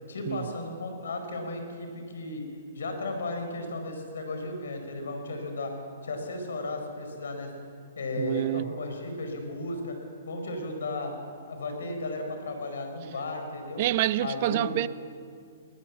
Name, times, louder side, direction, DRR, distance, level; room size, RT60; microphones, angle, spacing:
voice 1, 0.1-2.4 2.7-5.7 6.0-7.5 7.9-10.0 10.3-11.1 11.5-13.9 14.2-14.9, left 2 dB, 75° left, 5.0 m, -34 dB
voice 2, 8.2-8.7 13.8-14.9, right 14 dB, 50° right, 0.6 m, -27 dB
21.0 x 19.0 x 7.2 m
hypercardioid pair, 120°, 0 cm